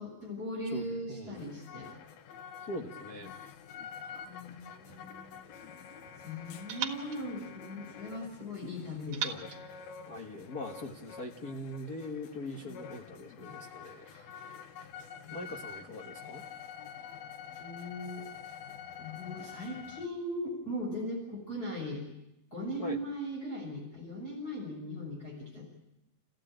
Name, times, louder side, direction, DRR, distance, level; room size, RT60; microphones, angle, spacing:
voice 1, 0.0-1.9 4.0-5.3 6.0-9.5 14.0-14.3 15.2-15.4 17.6-18.3 19.0-22.0 22.5-25.6, equal, 25° left, -3 dB, 5.8 m, -39 dB
voice 2, 0.6-1.4 2.6-3.3 9.2-9.5 10.0-14.1 15.3-16.4 22.8-23.0, left 1 dB, 55° left, 3 dB, 1.0 m, -42 dB
sound 1, 1.3-20.1, left 7 dB, 85° left, 3.1 m, -47 dB
sound 2, 4.9-6.1 6.7-8.3 9.1-10.7, right 8 dB, 55° right, 2.8 m, -42 dB
30.0 x 15.5 x 8.9 m, 0.88 s
omnidirectional pair, 4.2 m